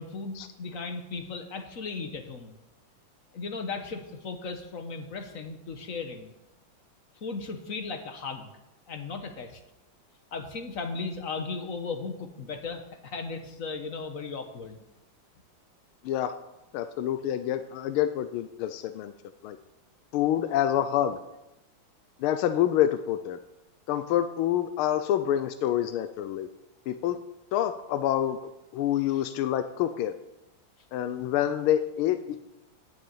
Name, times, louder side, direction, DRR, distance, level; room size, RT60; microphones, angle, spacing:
voice 1, 0.0-2.6 3.3-6.3 7.2-8.5 8.9-9.6 10.3-14.8 29.1-29.2, left 4 dB, 45° left, 6 dB, 1.3 m, -36 dB
voice 2, 16.7-19.1 19.4-19.6 20.1-21.2 22.2-23.4 23.9-26.5 26.9-27.2 27.5-28.4 28.7-30.1 30.9-32.4, left 11 dB, 80° left, 11 dB, 1.4 m, -27 dB
9.7 x 6.7 x 8.6 m, 0.92 s
omnidirectional pair, 2.4 m